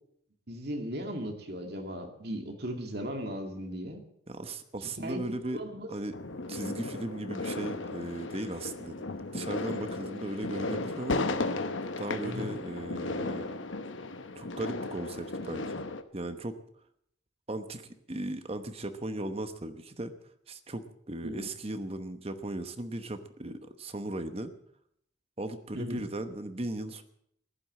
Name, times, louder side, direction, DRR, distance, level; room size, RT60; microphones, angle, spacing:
voice 1, 0.5-4.0 5.0-5.2 5.5-5.9 12.2-12.5 21.2-21.5 25.7-26.0, equal, 50° right, 4 dB, 2.2 m, -37 dB
voice 2, 4.3-5.6 5.9-6.2 6.5-9.1 9.3-11.6 12.0-13.6 14.3-15.8 16.1-16.6 17.5-20.1 20.5-24.5 25.4-27.0, right 1 dB, 30° right, 9 dB, 1.0 m, -37 dB
sound 1, 6.1-16.0, left 3 dB, 75° left, 1.0 m, -35 dB
15.0 x 11.5 x 7.5 m, 0.71 s
head